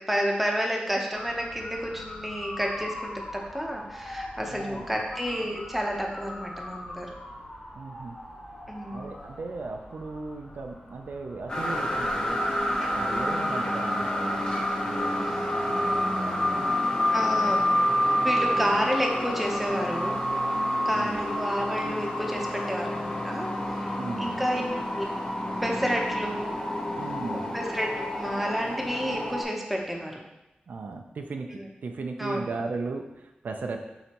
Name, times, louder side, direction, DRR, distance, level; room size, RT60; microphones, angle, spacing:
voice 1, 0.0-7.1 8.7-9.1 12.8-13.1 17.1-17.6 18.2-20.2 20.8-23.5 23.8-24.6 24.9-25.1 25.6-26.6 27.5-30.2 31.5-31.7 32.2-32.4, equal, 5° right, 0 dB, 0.8 m, -30 dB
Motor vehicle (road) / Siren, 1.1-13.4, left 1 dB, 70° left, 1.7 m, -42 dB
voice 2, 4.5-4.8 7.7-8.2 8.9-12.4 12.9-14.5 14.8-16.7 20.9-21.2 24.0-24.4 27.0-27.6 30.7-33.9, right 3 dB, 75° right, 4 dB, 0.5 m, -37 dB
sound 1, 11.5-29.4, left 1 dB, 30° left, 1.0 m, -28 dB
7.7 x 4.1 x 3.0 m, 0.93 s
wide cardioid pair, 135°, 3 cm